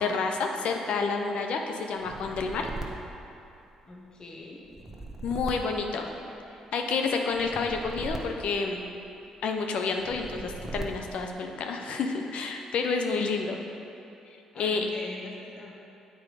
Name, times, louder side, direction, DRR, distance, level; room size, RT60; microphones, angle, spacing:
voice 1, 0.0-2.7 5.2-6.1 6.7-8.8 9.4-13.6 14.6-14.9, left 4 dB, 65° left, 3 dB, 0.6 m, -29 dB
sound 1, 2.0-4.0 4.6-6.6 7.3-9.2 10.0-11.3, right 2 dB, 15° right, 1.1 m, -40 dB
voice 2, 3.9-4.6 14.5-15.7, left 2 dB, 35° left, -2 dB, 1.5 m, -42 dB
7.7 x 4.9 x 4.8 m, 2.7 s
supercardioid pair, 55°, 2 cm